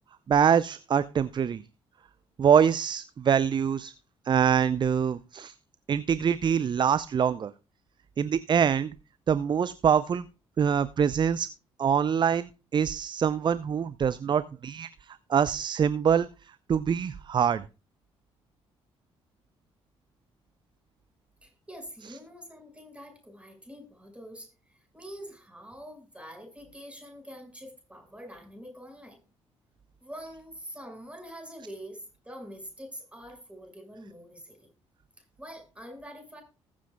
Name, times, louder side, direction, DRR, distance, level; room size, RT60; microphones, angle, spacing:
voice 1, 0.3-1.6 2.4-3.9 4.3-5.5 5.9-7.5 8.2-8.9 9.3-10.2 10.6-11.5 11.8-14.9 15.3-16.3 16.7-17.6, right 7 dB, 35° right, 16 dB, 0.5 m, -24 dB
voice 2, 21.4-29.2 30.0-34.7 35.2-36.4, equal, 10° right, 4 dB, 5.6 m, -45 dB
20.0 x 7.4 x 2.3 m, 0.32 s
figure-of-eight pair, 45°, 14 cm